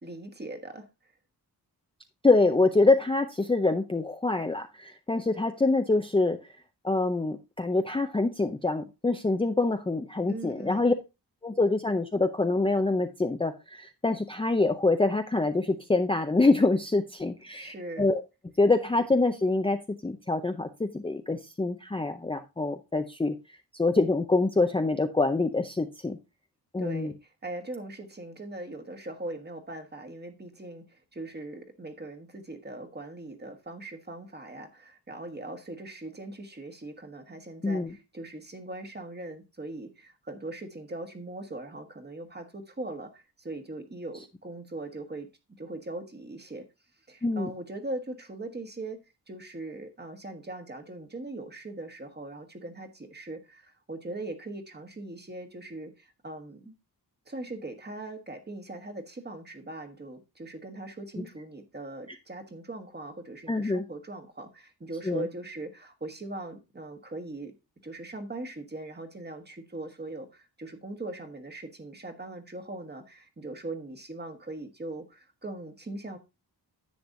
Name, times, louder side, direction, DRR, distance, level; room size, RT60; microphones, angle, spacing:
voice 1, 0.0-0.9 10.3-10.9 17.5-18.1 26.8-45.3 45.6-46.6 47.1-56.7 57.3-67.5 67.8-76.2, right 2 dB, 25° right, 1.4 m, -40 dB
voice 2, 2.2-6.4 6.8-10.9 11.4-18.2 18.6-23.3 23.7-26.2 26.7-27.1 37.6-37.9 47.2-47.5 61.2-61.3 63.5-63.8 65.1-65.3, left 3 dB, 15° left, 0.6 m, -25 dB
10.5 x 7.8 x 2.6 m
wide cardioid pair, 140°, 40 cm